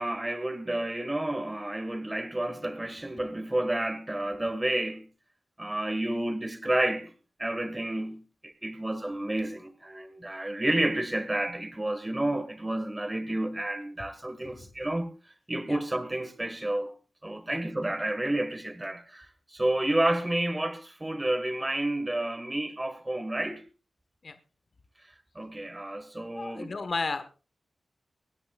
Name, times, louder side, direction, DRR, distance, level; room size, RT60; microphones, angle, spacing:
voice 1, 0.0-5.1 5.6-7.1 7.4-15.1 15.5-16.9 17.2-23.6 25.3-26.7, right 1 dB, 20° right, 1.5 m, -30 dB
voice 2, 26.4-27.2, left 4 dB, 55° left, 1.3 m, -34 dB
24.5 x 9.6 x 2.4 m
wide cardioid pair, 95°, 0 cm